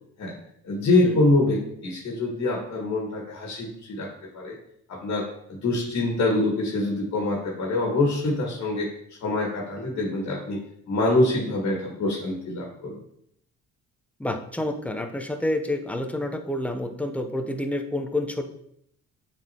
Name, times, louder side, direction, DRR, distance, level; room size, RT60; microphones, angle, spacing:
voice 1, 0.6-4.1 4.3-4.6 4.9-8.9 9.2-10.6 10.9-12.9, left 2 dB, 60° left, -2 dB, 1.7 m, -25 dB
voice 2, 14.2-18.4, left 1 dB, 5° left, 5 dB, 0.7 m, -28 dB
7.5 x 4.4 x 2.9 m, 0.72 s
cardioid pair, 90°, 30 cm